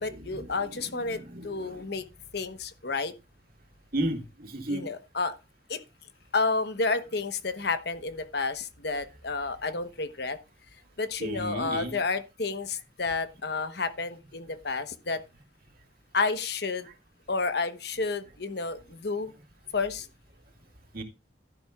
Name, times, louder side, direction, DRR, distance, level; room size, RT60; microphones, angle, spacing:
voice 1, 0.0-2.0 2.3-3.1 4.7-5.3 5.7-5.8 6.3-10.4 11.0-15.2 16.1-16.9 17.3-19.3 19.7-20.1, left 4 dB, 65° left, 1.0 m, -30 dB
voice 2, 1.1-1.8 3.9-4.9 11.2-12.0 20.9-21.0, right 1 dB, 55° right, 2.3 m, -33 dB
12.5 x 11.0 x 2.4 m
head